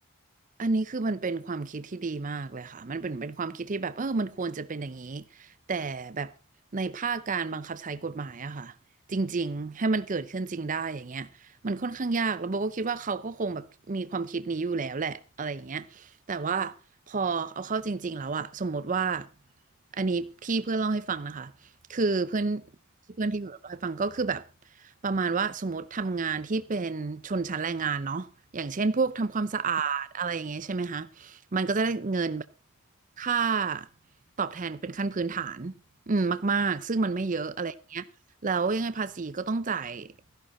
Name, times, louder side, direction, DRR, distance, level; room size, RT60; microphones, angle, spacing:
voice 1, 0.6-6.3 6.7-8.7 9.1-16.8 17.1-19.3 19.9-21.5 21.9-22.6 23.2-24.4 24.8-32.4 33.2-33.9 34.4-35.7 36.1-38.1 38.4-40.1, right 4 dB, 35° right, 0.6 m, -30 dB
15.0 x 11.5 x 4.1 m
head